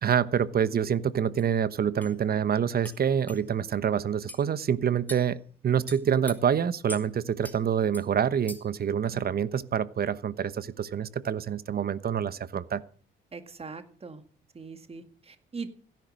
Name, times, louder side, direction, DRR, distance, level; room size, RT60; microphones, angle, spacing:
voice 1, 0.0-5.4 5.6-12.8, right 8 dB, 50° right, 17 dB, 1.1 m, -26 dB
sound 1, 1.4-1.5 2.0-2.1 2.8-3.0 3.3-3.4 4.3-4.4 5.1-5.3 5.9-6.4 6.9-7.1 7.4-7.6 7.9-8.1 8.5-8.8, left 1 dB, 10° left, 2.6 m, -42 dB
voice 2, 13.3-14.2 14.5-15.7, right 4 dB, 30° right, 9 dB, 2.0 m, -41 dB
16.0 x 10.5 x 6.4 m, 0.43 s
cardioid pair, 90°, 20 cm